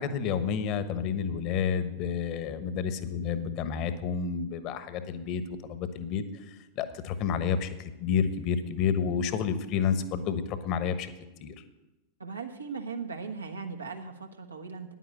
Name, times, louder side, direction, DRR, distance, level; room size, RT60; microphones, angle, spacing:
voice 1, 0.0-6.2 6.8-11.1 11.4-11.5, left 7 dB, 40° left, 11 dB, 1.1 m, -30 dB
voice 2, 12.2-14.9, right 5 dB, 80° right, 3 dB, 1.3 m, -38 dB
9.9 x 9.4 x 7.7 m, 0.98 s
figure-of-eight pair, 90°, 0 cm